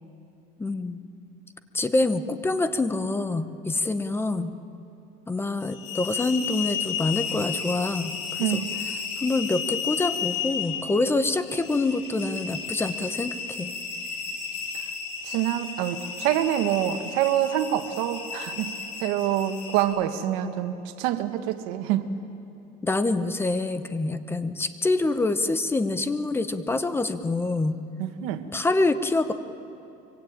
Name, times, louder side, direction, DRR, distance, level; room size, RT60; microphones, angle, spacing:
voice 1, 0.6-1.0 1.7-4.5 5.3-8.1 8.4-8.6 9.2-13.7 22.8-27.8 28.5-29.3, left 2 dB, 15° left, 10 dB, 1.0 m, -26 dB
sound 1, 5.6-19.8, left 7 dB, 75° left, 5.9 m, -33 dB
voice 2, 8.4-8.8 15.2-18.7 19.0-22.1 28.0-28.4, right 12 dB, 85° right, 8 dB, 1.7 m, -26 dB
24.0 x 24.0 x 9.0 m, 2.7 s
cardioid pair, 135°, 18 cm